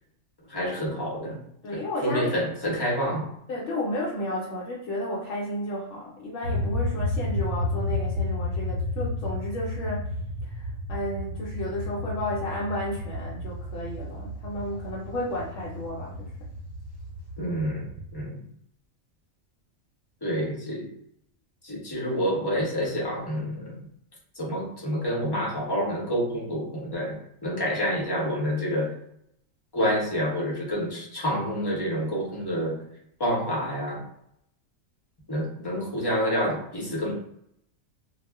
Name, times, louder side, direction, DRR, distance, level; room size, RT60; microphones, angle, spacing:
voice 1, 0.5-1.4 1.7-3.3 17.4-18.4 20.2-20.9 21.6-23.8 24.4-28.9 29.7-32.8 33.2-34.0 35.3-37.1, equal, 25° left, -4 dB, 0.6 m, -28 dB
voice 2, 1.6-2.3 3.5-10.1 10.5-16.3, left 1 dB, 70° left, -4 dB, 0.9 m, -32 dB
sound 1, 6.4-18.3, left 2 dB, 65° right, 0.8 m, -32 dB
2.3 x 2.1 x 3.4 m, 0.74 s
omnidirectional pair, 1.3 m